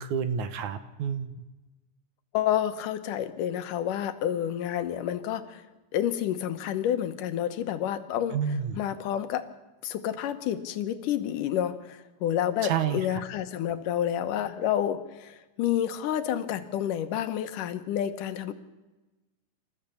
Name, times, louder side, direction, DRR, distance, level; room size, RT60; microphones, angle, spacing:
voice 1, 0.0-1.5 8.3-8.8 12.6-13.1, right 7 dB, 75° right, 11 dB, 2.5 m, -29 dB
voice 2, 2.3-5.6 5.9-8.4 8.8-9.4 9.8-18.5, left 10 dB, 85° left, 10 dB, 2.7 m, -29 dB
28.0 x 14.0 x 7.1 m, 1.1 s
omnidirectional pair, 3.6 m